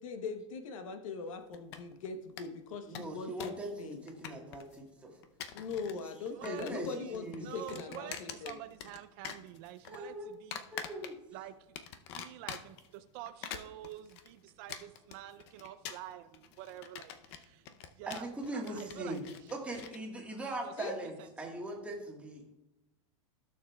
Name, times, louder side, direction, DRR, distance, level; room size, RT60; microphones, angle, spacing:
voice 1, 0.0-4.0 5.5-8.6 20.8-21.0, left 4 dB, 75° left, 7 dB, 1.1 m, -41 dB
sound 1, 1.5-2.1 2.4-2.5 2.7-3.7 3.9-4.8 5.2-6.0 6.3-6.9 7.1-9.0 9.2-10.0 10.5-11.4 11.8-12.9 13.3-20.0, left 8 dB, 50° left, 0.7 m, -45 dB
voice 2, 2.9-5.1 6.4-6.9 7.1-7.5 9.9-10.3 10.7-11.2 18.1-19.2 19.5-22.4, right 1 dB, 5° right, -1 dB, 1.5 m, -40 dB
voice 3, 6.4-7.1 7.4-10.6 11.3-11.5 12.2-17.6 18.0-18.3 18.5-19.2 20.6-20.9, right 13 dB, 45° right, 12 dB, 0.5 m, -48 dB
15.5 x 6.7 x 2.3 m, 0.94 s
supercardioid pair, 150°, 17 cm